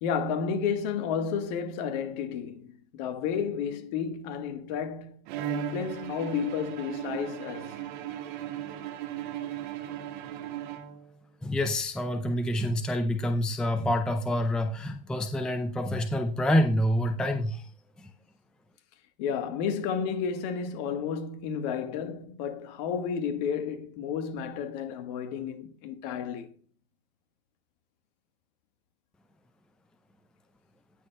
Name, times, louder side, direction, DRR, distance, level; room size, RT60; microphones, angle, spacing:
voice 1, 0.0-7.7 19.2-26.5, left 7 dB, 45° left, 1.3 m, -32 dB
Bowed string instrument, 5.3-11.3, right 10 dB, 55° right, 1.7 m, -36 dB
voice 2, 11.4-17.7 18.0-18.1, left 1 dB, 5° left, 0.4 m, -27 dB
18.0 x 6.4 x 2.3 m
hypercardioid pair, 105°, 29 cm